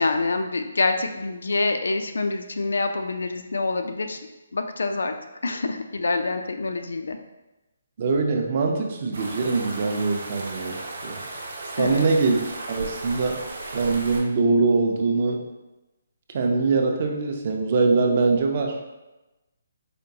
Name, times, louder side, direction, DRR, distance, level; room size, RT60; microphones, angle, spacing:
voice 1, 0.0-4.2 4.5-5.2 5.4-7.2 11.8-12.1, left 3 dB, 85° left, 6 dB, 0.3 m, -26 dB
voice 2, 8.0-11.2 11.8-12.4 12.7-13.4 13.7-15.4 16.3-18.8, right 3 dB, 35° right, 3 dB, 0.4 m, -23 dB
sound 1, 9.1-14.2, right 2 dB, 65° right, 0.7 m, -36 dB
4.2 x 2.3 x 2.7 m, 1.0 s
hypercardioid pair, 170°, 0 cm